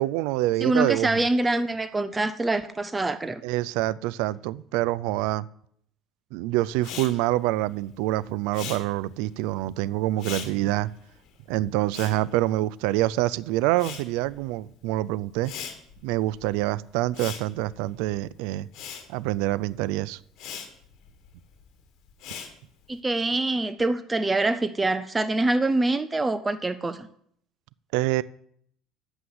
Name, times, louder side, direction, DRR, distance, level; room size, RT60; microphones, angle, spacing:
voice 1, 0.0-1.1 3.4-5.5 6.3-10.9 11.5-15.5 16.0-18.7 19.1-20.2 27.9-28.2, right 16 dB, 80° right, 20 dB, 0.4 m, -26 dB
voice 2, 0.6-3.4 22.9-27.1, right 2 dB, 15° right, 13 dB, 0.5 m, -25 dB
Respiratory sounds, 6.8-13.2 13.5-23.0, left 8 dB, 60° left, 2.0 m, -42 dB
8.0 x 7.0 x 7.8 m, 0.67 s
cardioid pair, 120°, 0 cm